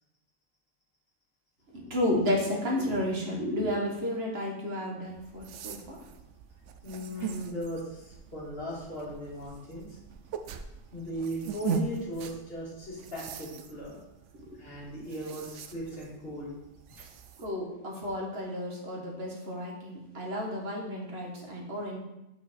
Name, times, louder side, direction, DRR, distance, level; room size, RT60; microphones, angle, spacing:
voice 1, 1.7-6.0 14.4-14.6 17.4-22.0, left 1 dB, 55° right, -1 dB, 1.7 m, -32 dB
sound 1, 5.1-17.5, right 6 dB, 75° right, 0.9 m, -41 dB
voice 2, 6.8-10.0 10.9-14.0 14.5-16.6 17.0-17.1, equal, 50° left, -6 dB, 2.6 m, -38 dB
6.5 x 5.4 x 4.3 m, 0.91 s
omnidirectional pair, 1.3 m